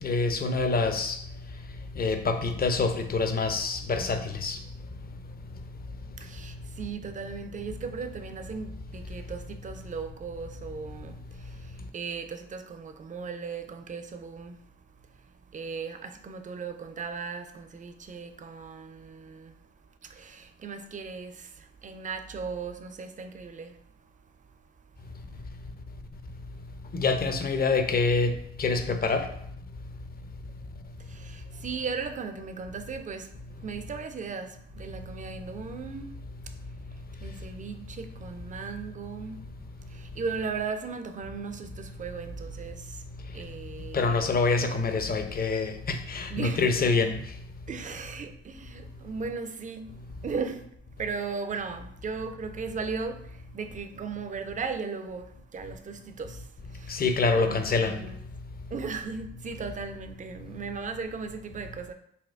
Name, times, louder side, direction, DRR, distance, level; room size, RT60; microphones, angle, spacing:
voice 1, 0.0-1.2 2.0-4.6 26.9-28.3 28.6-29.2 43.9-47.2 56.9-58.0, left 4 dB, 30° left, 0.5 m, -26 dB
voice 2, 6.2-25.5 31.0-39.5 39.9-43.1 43.3-44.4 46.3-46.6 47.7-50.7 50.9-58.2 58.7-61.9, right 5 dB, 25° right, 0.4 m, -37 dB
4.1 x 2.2 x 2.4 m
hypercardioid pair, 40°, 32 cm